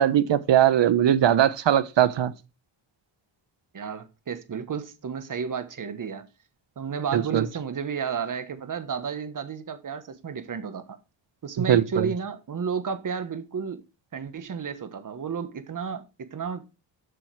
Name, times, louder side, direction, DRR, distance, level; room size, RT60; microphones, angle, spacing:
voice 1, 0.0-2.3 7.1-7.4 11.7-12.1, right 10 dB, 65° right, 0.9 m, -20 dB
voice 2, 3.7-6.3 6.8-11.0 11.4-13.8 14.1-16.7, right 6 dB, 40° right, 1.2 m, -32 dB
7.8 x 6.2 x 4.7 m
cardioid pair, 100°, 48 cm